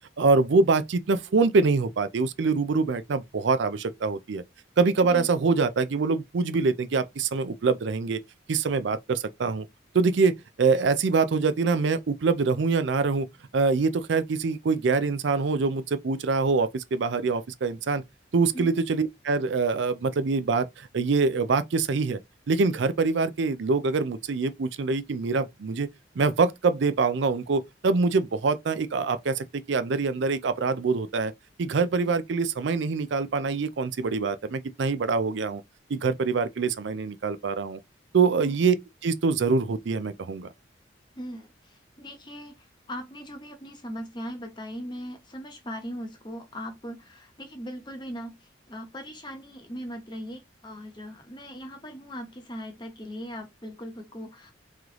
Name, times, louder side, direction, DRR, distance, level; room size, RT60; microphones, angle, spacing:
voice 1, 0.2-4.4 4.8-8.2 8.5-9.7 9.9-13.3 13.5-18.0 18.3-22.2 22.5-25.9 26.2-31.3 31.6-35.6 35.9-37.8 38.1-38.8 39.0-40.5, right 4 dB, 70° right, 0.4 m, -24 dB
voice 2, 41.1-54.5, equal, 25° left, 0.9 m, -39 dB
3.8 x 3.1 x 3.0 m
head